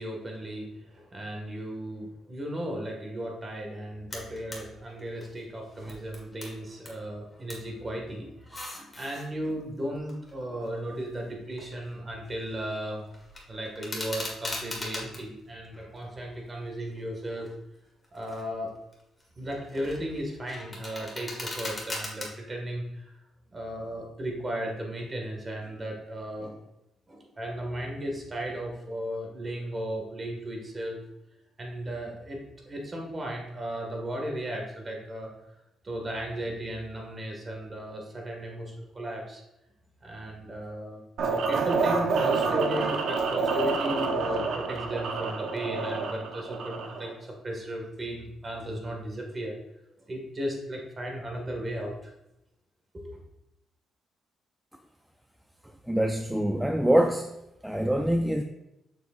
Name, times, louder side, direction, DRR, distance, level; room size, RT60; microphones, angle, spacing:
voice 1, 0.0-13.0 13.5-17.5 18.1-18.7 19.4-23.1 23.5-26.6 27.1-31.0 31.6-35.3 35.8-39.4 40.0-49.5 50.1-52.1 52.9-53.2, equal, 30° right, 1 dB, 1.8 m, -35 dB
sound 1, 4.1-4.6 5.0-7.0 7.2-7.7 8.3-9.2 9.9-12.1 12.3-12.7 13.1-15.2 15.7-16.7 17.2-17.5 18.0-18.5 18.9-22.3, left 2 dB, 20° left, 1.7 m, -40 dB
sound 2, 41.2-47.1, right 4 dB, 70° right, 0.8 m, -28 dB
voice 2, 55.9-57.3 57.6-58.4, right 1 dB, 5° right, 5 dB, 0.4 m, -24 dB
6.8 x 6.5 x 2.5 m, 0.89 s
cardioid pair, 90°, 0 cm